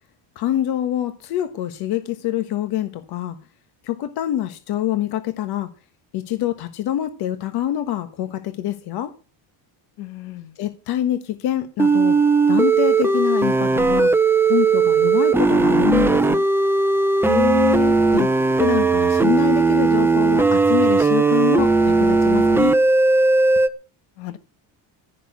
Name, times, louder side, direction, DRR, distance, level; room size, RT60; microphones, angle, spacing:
voice 1, 0.3-3.4 3.8-5.7 6.1-9.1 10.6-12.2 12.5-14.1 14.4-16.4 18.1-22.7, left 12 dB, 60° left, 1.4 m, -25 dB
voice 2, 10.0-10.5 17.2-18.0 24.2-24.4, left 12 dB, 75° left, 1.9 m, -25 dB
sound 1, 11.8-23.7, right 3 dB, 5° right, 0.7 m, -17 dB
15.5 x 6.4 x 9.6 m
cardioid pair, 165°, 44 cm